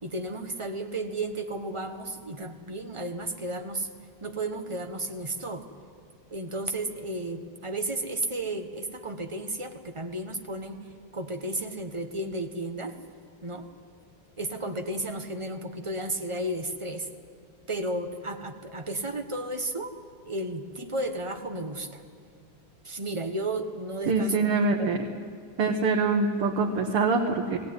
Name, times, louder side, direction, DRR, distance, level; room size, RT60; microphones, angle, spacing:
voice 1, 0.0-3.9 4.2-5.7 6.3-10.8 11.1-12.9 13.4-13.7 14.4-17.1 17.7-19.9 20.3-22.0 22.8-24.5 24.8-25.0, right 1 dB, 20° right, 4 dB, 0.8 m, -33 dB
voice 2, 24.1-25.0 25.6-27.6, right 4 dB, 85° right, 1 dB, 2.2 m, -24 dB
19.0 x 17.5 x 9.6 m, 2.1 s
omnidirectional pair, 2.4 m